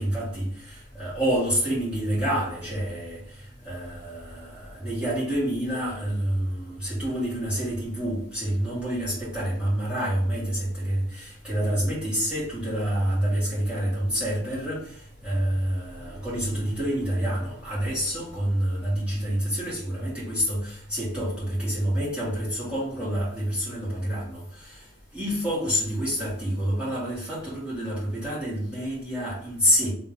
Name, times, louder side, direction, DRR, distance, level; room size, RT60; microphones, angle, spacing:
voice 1, 0.0-3.2 3.6-14.9 15.2-24.8 25.1-29.9, equal, 5° right, -10 dB, 1.5 m, -28 dB
3.1 x 2.4 x 3.5 m, 0.64 s
head